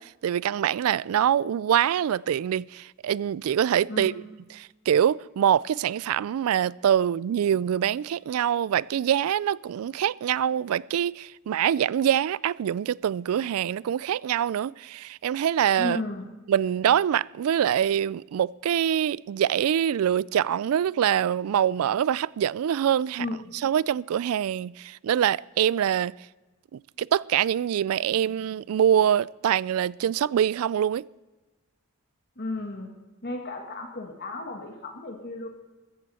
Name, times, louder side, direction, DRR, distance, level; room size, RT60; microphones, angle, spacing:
voice 1, 0.0-4.1 4.6-16.0 16.5-23.3 23.6-26.1 26.7-31.0, right 9 dB, 75° right, 0.3 m, -24 dB
voice 2, 3.9-4.2 15.8-16.3 23.2-23.6 32.4-32.9 33.2-35.5, left 2 dB, 45° left, 1.7 m, -34 dB
14.5 x 14.5 x 4.2 m
head